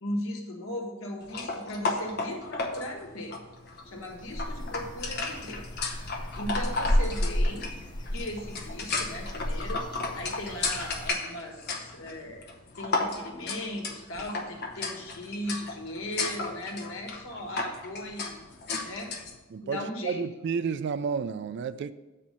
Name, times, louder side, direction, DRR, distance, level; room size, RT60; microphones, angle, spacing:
voice 1, 0.0-3.4 3.8-5.6 6.3-7.7 8.1-9.8 10.1-12.5 12.8-18.4 18.8-19.1 19.6-20.2, left 1 dB, 65° left, 1 dB, 1.4 m, -37 dB
sound 1, 1.3-19.4, left 3 dB, 45° left, 0.9 m, -35 dB
sound 2, 3.8-11.1, equal, 20° left, 0.6 m, -32 dB
voice 2, 19.5-21.9, right 6 dB, 50° right, 14 dB, 0.3 m, -31 dB
7.2 x 4.3 x 6.5 m, 1.1 s
head